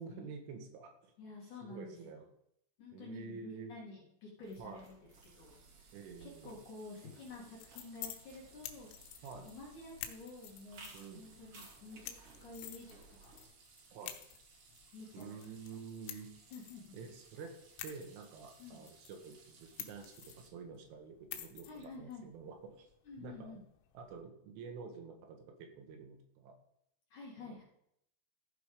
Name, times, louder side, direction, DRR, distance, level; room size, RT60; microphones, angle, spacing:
voice 1, 0.0-1.1 1.6-2.2 2.9-3.8 4.6-4.8 5.9-6.6 9.2-9.5 10.9-11.3 13.9-14.2 15.1-16.3 16.9-17.5 17.8-22.9 23.2-23.6 24.0-26.5 27.4-27.6, right 5 dB, 75° right, 3 dB, 3.9 m, -49 dB
voice 2, 1.2-2.2 2.8-5.0 5.3-5.9 6.2-8.9 9.1-12.1 12.4-13.3 14.9-15.3 16.1-16.2 16.5-17.0 18.6-18.8 21.7-22.3 23.0-23.6 27.1-27.6, left 3 dB, 50° left, -4 dB, 2.8 m, -50 dB
sound 1, 4.4-13.4, right 3 dB, 40° right, 2.3 m, -60 dB
sound 2, 5.1-20.5, right 4 dB, 60° right, 3.6 m, -63 dB
sound 3, 7.3-24.2, left 12 dB, 85° left, 3.6 m, -52 dB
15.0 x 6.2 x 5.0 m, 0.74 s
omnidirectional pair, 5.9 m